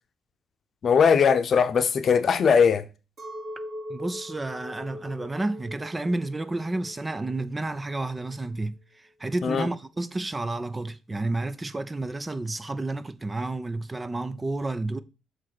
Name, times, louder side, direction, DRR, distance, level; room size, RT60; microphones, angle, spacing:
voice 1, 0.8-2.8 9.4-9.7, left 6 dB, 55° left, 0.7 m, -20 dB
Chink clink, 3.2-8.6, left 1 dB, 45° right, 2.6 m, -41 dB
voice 2, 3.9-8.8 9.2-15.0, right 2 dB, 20° right, 0.5 m, -30 dB
7.3 x 3.2 x 5.9 m
cardioid pair, 90°, 0 cm